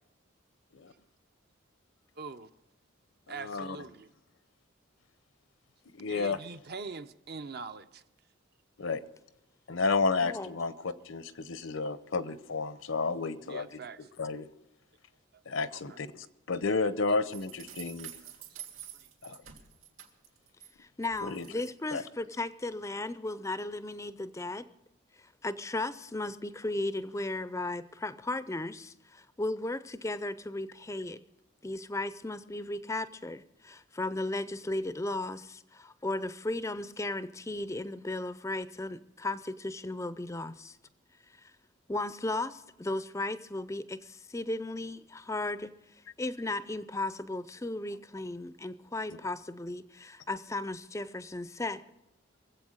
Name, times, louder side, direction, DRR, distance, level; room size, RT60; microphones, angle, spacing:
voice 1, 2.2-2.5 3.3-4.1 6.1-8.0 13.4-14.0 15.7-16.0 18.2-18.3 19.3-19.4, right 4 dB, 50° right, 0.6 m, -43 dB
voice 2, 3.3-3.8 6.0-6.4 8.8-9.0 9.7-13.8 14.2-14.5 15.5-16.1 16.5-18.1 19.2-19.4 21.2-21.5 21.9-22.0, left 4 dB, 70° left, 0.8 m, -31 dB
voice 3, 10.2-10.5 20.8-24.7 25.2-31.2 31.6-40.8 41.4-41.5 41.9-45.7 46.2-51.8, left 2 dB, 15° left, 0.5 m, -35 dB
sound 1, 17.3-20.7 21.0-21.7, right 10 dB, 75° right, 2.9 m, -48 dB
22.5 x 8.1 x 6.4 m
head